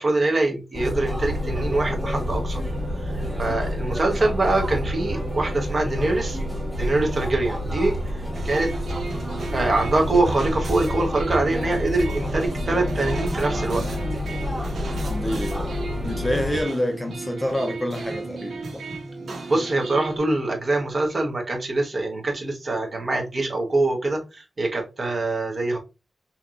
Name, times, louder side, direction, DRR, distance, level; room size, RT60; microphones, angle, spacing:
voice 1, 0.0-2.6 3.0-6.4 6.8-8.7 9.5-13.8 19.5-25.8, right 2 dB, 40° right, 1.2 m, -24 dB
sound 1, 0.7-16.6, left 1 dB, 10° right, 1.8 m, -28 dB
sound 2, 8.3-20.2, right 3 dB, 85° right, 1.5 m, -34 dB
voice 2, 15.1-15.7 16.0-18.8, left 1 dB, 10° left, 0.6 m, -27 dB
5.7 x 2.9 x 2.5 m
wide cardioid pair, 170°, 0 cm